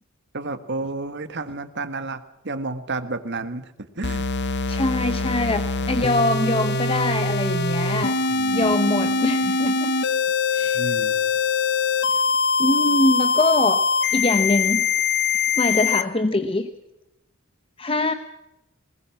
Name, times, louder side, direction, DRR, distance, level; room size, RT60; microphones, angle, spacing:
voice 1, 0.3-4.2 8.3-9.3 10.7-11.2, right 3 dB, 55° right, 10 dB, 1.7 m, -31 dB
sound 1, 4.0-16.0, left 4 dB, 55° left, 1.1 m, -23 dB
voice 2, 4.7-8.2 8.5-10.0 10.5-10.8 12.1-12.2 12.6-14.9 15.6-16.7 17.8-18.1, left 2 dB, 25° left, 9 dB, 0.9 m, -23 dB
Speech synthesizer, 4.8-7.8, right 1 dB, 30° right, 4.9 m, -47 dB
20.0 x 19.5 x 7.3 m, 0.91 s
head